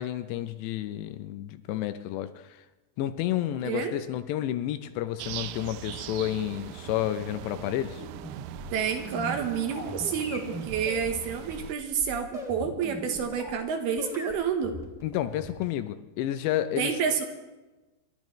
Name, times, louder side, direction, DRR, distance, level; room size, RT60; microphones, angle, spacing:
voice 1, 0.0-2.6 3.0-8.0 15.0-17.0, left 12 dB, 80° left, 10 dB, 2.6 m, -31 dB
voice 2, 3.6-4.0 8.7-14.7 16.8-17.2, right 6 dB, 70° right, 5 dB, 2.7 m, -29 dB
sound 1, 5.2-11.8, right 14 dB, 90° right, 3.0 m, -41 dB
sound 2, 7.9-13.6 14.0-15.8, equal, ahead, 1.0 m, -40 dB
27.5 x 12.0 x 3.1 m, 1.1 s
omnidirectional pair, 5.3 m